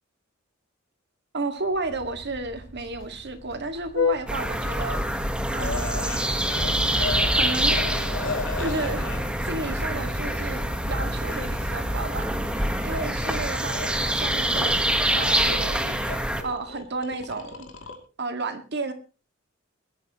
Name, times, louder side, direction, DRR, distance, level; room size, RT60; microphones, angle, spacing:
voice 1, 1.3-5.0 5.5-6.3 7.3-7.8 8.6-12.3 12.8-15.8 16.4-17.7 18.2-18.9, right 3 dB, 55° right, 7 dB, 1.9 m, -32 dB
Vehicle horn car horn honking, 1.6-17.0, left 3 dB, 65° left, 6.4 m, -36 dB
sound 1, 4.3-16.4, right 1 dB, 5° right, 1.3 m, -26 dB
sound 2, 5.6-9.3 9.6-10.9 11.3-12.8 13.1-13.4 13.7-14.8 15.0-18.0, left 3 dB, 85° left, 2.7 m, -36 dB
21.0 x 13.0 x 3.0 m, 0.33 s
head